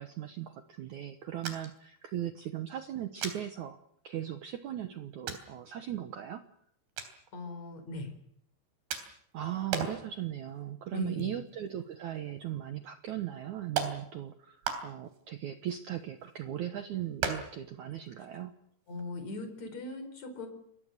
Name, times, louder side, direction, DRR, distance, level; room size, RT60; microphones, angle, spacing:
voice 1, 0.0-3.8 4.0-6.4 9.3-18.5, right 11 dB, 85° right, 9 dB, 1.6 m, -38 dB
sound 1, 1.4-1.8 2.1-2.2 3.2-3.4 4.3-4.4 5.3-5.5 7.0-7.2 8.9-9.3 9.7-10.1 10.5-10.6 11.0-11.9 12.1-12.2 13.1-13.2 13.8-14.0 14.6-15.2 15.7-16.4 17.2-17.7 17.9-18.1 18.4-18.5 18.9-19.0, right 6 dB, 70° right, 5.4 m, -36 dB
voice 2, 7.3-8.1 10.9-11.4 18.9-20.5, left 3 dB, 40° left, 7 dB, 5.7 m, -39 dB
29.0 x 22.0 x 6.7 m, 0.70 s
omnidirectional pair, 5.1 m